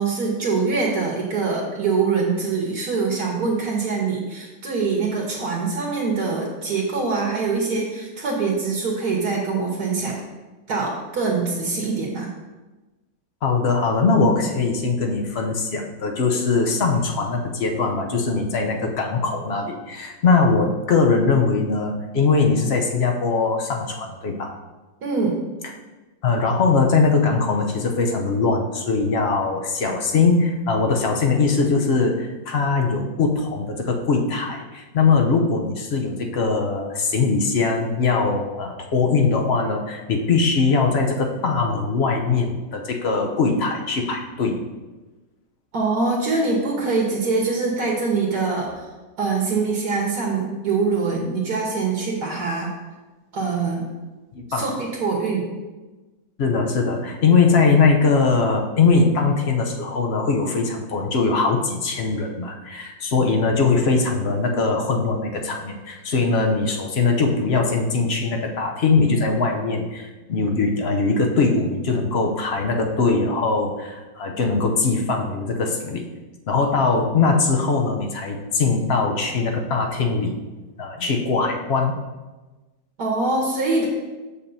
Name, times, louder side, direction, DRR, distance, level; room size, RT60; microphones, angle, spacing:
voice 1, 0.0-10.2 10.7-12.3 25.0-25.4 45.7-48.9 49.2-52.7 53.3-53.9 54.5-54.7 55.0-55.5 83.0-83.9, right 4 dB, 65° right, -2 dB, 1.5 m, -24 dB
voice 2, 13.4-24.5 26.2-44.6 54.4-54.7 56.4-76.0 76.5-80.4 80.8-82.0, left 4 dB, 60° left, 2 dB, 0.6 m, -21 dB
7.3 x 6.7 x 2.7 m, 1.2 s
omnidirectional pair, 1.8 m